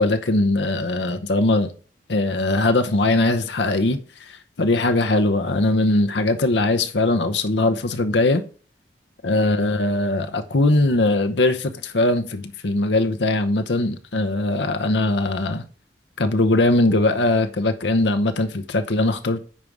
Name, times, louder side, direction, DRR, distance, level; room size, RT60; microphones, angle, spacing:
voice 1, 0.0-1.7 2.1-8.4 9.2-15.6 16.2-19.4, left 2 dB, 75° left, 0.8 m, -20 dB
8.9 x 5.2 x 4.7 m
head